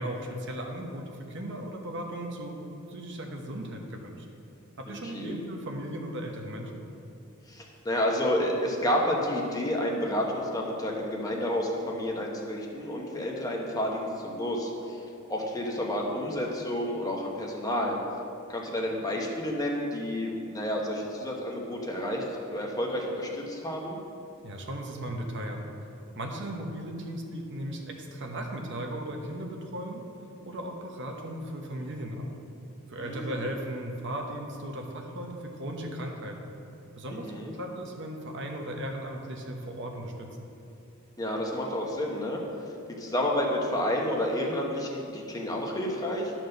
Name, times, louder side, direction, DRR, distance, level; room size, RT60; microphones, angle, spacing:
voice 1, 0.0-2.6 2.9-4.3 4.8-6.8 24.4-25.7 26.2-30.1 30.4-32.3 32.9-36.4 36.9-37.3 37.6-40.3, right 1 dB, 60° right, 2 dB, 1.0 m, -36 dB
voice 2, 4.9-5.4 7.5-15.0 15.3-18.0 18.5-24.0 33.0-33.4 37.1-37.5 41.2-42.4 43.0-46.3, left 1 dB, 15° left, -1 dB, 1.1 m, -30 dB
11.5 x 4.5 x 6.5 m, 2.6 s
head